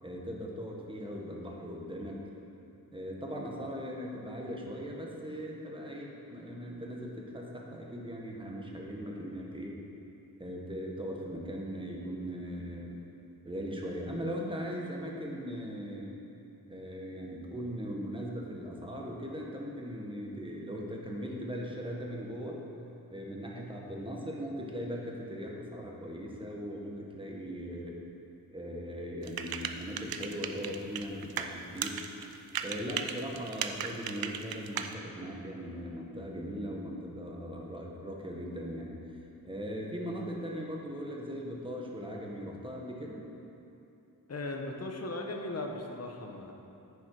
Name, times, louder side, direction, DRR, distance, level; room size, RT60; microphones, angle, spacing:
voice 1, 0.0-2.2 2.9-9.8 10.4-13.0 13.4-16.1 16.7-22.6 23.1-27.9 28.5-32.0 32.6-38.9 39.4-43.2, equal, 15° right, -2 dB, 1.5 m, -39 dB
sound 1, 29.2-31.5 31.8-34.9, right 8 dB, 75° right, 0.6 m, -35 dB
voice 2, 44.3-46.5, left 2 dB, 45° left, 2 dB, 1.1 m, -37 dB
9.6 x 6.9 x 4.9 m, 2.8 s
wide cardioid pair, 90°, 36 cm